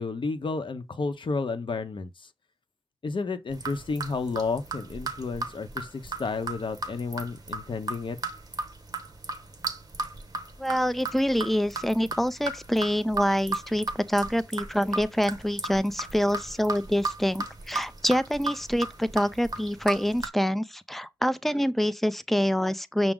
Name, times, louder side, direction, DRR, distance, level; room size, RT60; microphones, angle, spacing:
voice 1, 0.0-2.1 3.0-8.2, left 4 dB, 60° left, 0.7 m, -31 dB
sound 1, 3.5-20.3, right 2 dB, 45° right, 0.9 m, -35 dB
voice 2, 10.6-23.1, equal, ahead, 0.4 m, -26 dB
5.9 x 2.0 x 3.6 m
cardioid pair, 60°, 9 cm